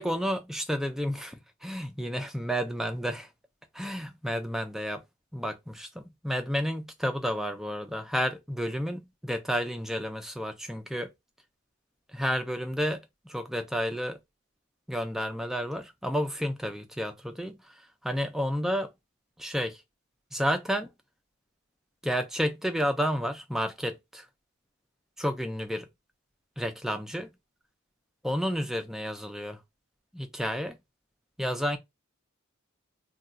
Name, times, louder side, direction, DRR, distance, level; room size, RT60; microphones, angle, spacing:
voice 1, 0.0-3.3 3.7-5.0 5.3-11.1 12.1-14.2 14.9-18.9 19.4-19.8 20.3-20.9 22.0-24.3 25.2-25.9 26.6-27.3 28.2-29.6 30.1-30.8 31.4-31.8, equal, ahead, 0.3 m, -31 dB
2.3 x 2.3 x 3.9 m
head